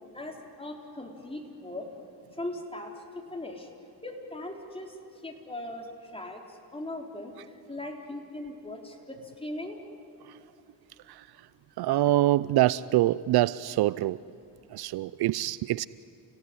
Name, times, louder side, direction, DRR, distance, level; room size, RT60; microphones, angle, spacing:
voice 1, 0.1-1.9 2.4-3.7 4.0-5.0 5.2-7.3 7.7-9.8, left 1 dB, 15° left, 1 dB, 4.1 m, -39 dB
voice 2, 11.8-14.2 14.7-15.9, right 15 dB, 65° right, 19 dB, 0.6 m, -25 dB
30.0 x 17.5 x 9.8 m, 2.7 s
cardioid pair, 95°, 40 cm